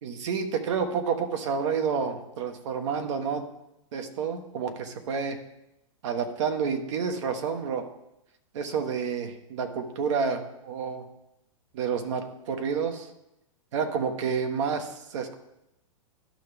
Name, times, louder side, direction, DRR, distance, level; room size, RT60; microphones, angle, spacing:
voice 1, 0.0-3.4 3.9-5.4 6.0-7.9 8.5-11.1 11.7-13.1 13.7-15.3, right 6 dB, 65° right, 6 dB, 1.3 m, -29 dB
11.5 x 5.6 x 3.5 m, 0.87 s
hypercardioid pair, 120°, 17 cm